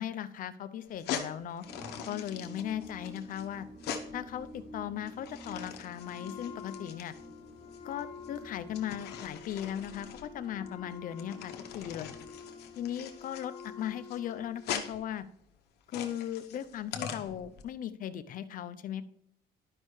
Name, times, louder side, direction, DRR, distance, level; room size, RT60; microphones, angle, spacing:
voice 1, 0.0-1.6 2.0-3.7 4.1-7.1 7.8-12.1 12.8-15.2 15.9-19.0, left 10 dB, 55° left, 12 dB, 0.5 m, -38 dB
sound 1, 0.9-17.6, left 8 dB, 80° left, 0.9 m, -43 dB
sound 2, 1.6-12.9, equal, 50° right, 2.0 m, -50 dB
Wind instrument woodwind instrument, 5.9-14.8, left 7 dB, 30° left, 0.9 m, -48 dB
11.5 x 5.4 x 3.2 m, 0.74 s
cardioid pair, 110°, 17 cm